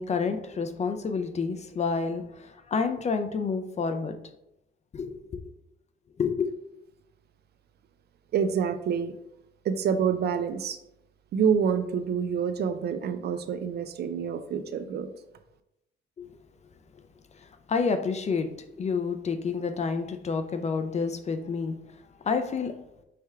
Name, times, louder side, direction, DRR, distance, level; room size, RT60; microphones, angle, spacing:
voice 1, 0.0-4.2 4.9-5.5 6.2-6.5 16.2-16.3 17.4-18.5 18.8-21.8 22.2-22.8, left 5 dB, 35° left, 9 dB, 0.4 m, -29 dB
voice 2, 8.3-9.1 9.6-10.8 11.3-15.1, right 7 dB, 55° right, 10 dB, 0.4 m, -27 dB
5.5 x 3.3 x 2.3 m, 0.86 s
cardioid pair, 90°, 20 cm